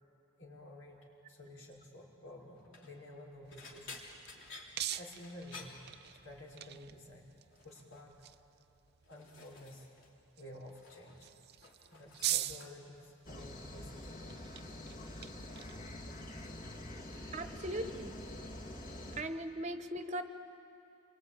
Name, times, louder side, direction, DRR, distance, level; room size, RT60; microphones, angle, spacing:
voice 1, 0.4-1.0 1.3-4.0 4.9-7.3 7.6-8.2 9.1-9.9 10.3-11.3 11.9-14.4, left 1 dB, 80° left, -2 dB, 5.5 m, -52 dB
sound 1, 2.5-2.9 3.5-6.5 6.8-7.2 7.5-8.0 8.7-10.1 10.4-11.2 11.5-13.0 13.9-14.2 14.6-16.7 16.9-17.5 17.8-18.1 19.3-19.4, left 3 dB, 60° left, 3.4 m, -54 dB
sound 2, 3.4-17.9, right 13 dB, 50° right, 0.6 m, -45 dB
sound 3, 13.2-19.2, left 1 dB, 40° left, 2.3 m, -46 dB
voice 2, 17.3-18.1 19.2-20.2, right 1 dB, 35° right, 8 dB, 1.1 m, -38 dB
28.0 x 23.5 x 9.0 m, 2.7 s
head